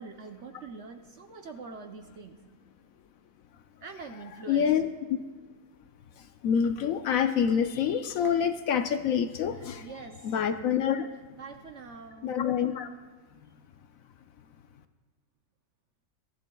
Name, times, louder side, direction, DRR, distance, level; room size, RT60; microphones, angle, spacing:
voice 1, 0.0-2.4 3.8-4.8 9.5-10.4 11.4-12.3, right 4 dB, 60° right, 5 dB, 0.8 m, -44 dB
voice 2, 4.5-4.9 6.4-9.8 10.2-11.1 12.2-12.9, left 8 dB, 70° left, 9 dB, 0.9 m, -26 dB
23.0 x 14.0 x 2.3 m, 1.4 s
omnidirectional pair, 1.7 m